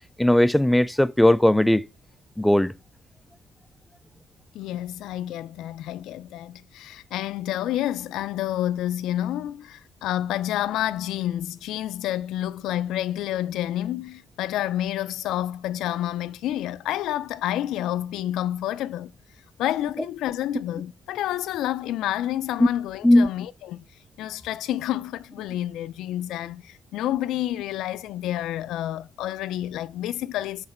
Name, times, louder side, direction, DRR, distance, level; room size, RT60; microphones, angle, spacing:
voice 1, 0.2-1.8 2.4-2.7 23.0-23.3, left 1 dB, 5° left, 0.4 m, -18 dB
voice 2, 4.5-19.1 19.6-23.8 24.2-30.7, left 13 dB, 90° left, 0.4 m, -29 dB
7.9 x 3.2 x 4.3 m
cardioid pair, 90°, 0 cm